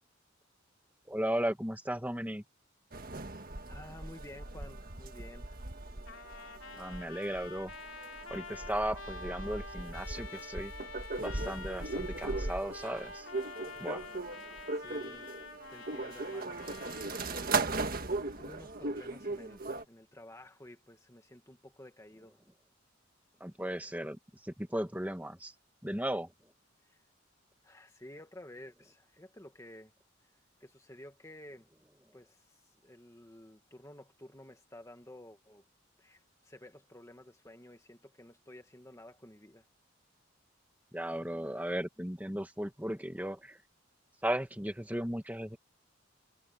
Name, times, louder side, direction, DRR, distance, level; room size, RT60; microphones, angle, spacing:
voice 1, 1.1-2.4 6.7-7.7 8.3-10.7 11.2-13.3 13.8-14.1 23.4-25.5 25.8-26.3 40.9-43.6 44.2-45.6, right 1 dB, 10° right, 1.6 m, -36 dB
sound 1, 2.9-19.8, right 3 dB, 45° right, 1.7 m, -38 dB
voice 2, 3.7-5.7 14.7-15.3 15.7-17.6 18.4-22.4 26.8-27.0 27.6-29.9 30.6-31.7 32.1-35.6 36.0-39.7, left 1 dB, 15° left, 1.7 m, -52 dB
Trumpet, 6.1-17.7, left 6 dB, 70° left, 3.0 m, -48 dB
head